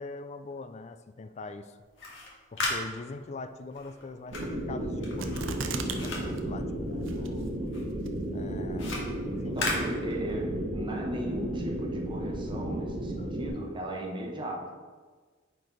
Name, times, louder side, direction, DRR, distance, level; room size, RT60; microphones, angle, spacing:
voice 1, 0.0-1.8 2.2-7.7 8.3-9.0 9.3-9.9 13.2-13.3, left 3 dB, 35° left, 10 dB, 0.4 m, -43 dB
sound 1, 1.8-7.4 7.7-10.6, left 2 dB, 75° left, 1.7 m, -37 dB
sound 2, 4.3-13.5, right 1 dB, 60° right, 1.6 m, -33 dB
sound 3, 5.2-6.1 6.4-6.5 7.1-7.5 8.1-8.2, right 5 dB, 85° right, 0.7 m, -35 dB
voice 2, 9.4-14.7, right 1 dB, 25° right, 0 dB, 1.1 m, -37 dB
9.1 x 4.6 x 4.0 m, 1.4 s
head